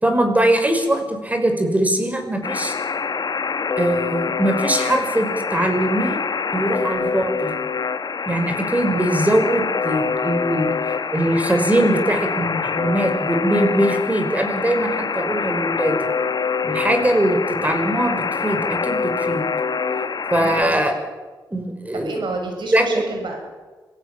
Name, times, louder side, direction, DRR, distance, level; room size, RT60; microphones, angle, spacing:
voice 1, 0.0-2.7 3.8-6.2 6.5-7.5 8.3-10.7 11.1-16.0 16.6-19.4 20.3-20.9 21.5-22.2 22.7-22.8, right 1 dB, 20° right, 5 dB, 5.8 m, -21 dB
Alarm, 2.4-20.6, left 5 dB, 55° left, 1.2 m, -25 dB
voice 2, 20.4-20.9 21.9-23.4, right 3 dB, 75° right, 3 dB, 7.3 m, -30 dB
26.0 x 17.0 x 7.6 m, 1.4 s
cardioid pair, 65°, 8 cm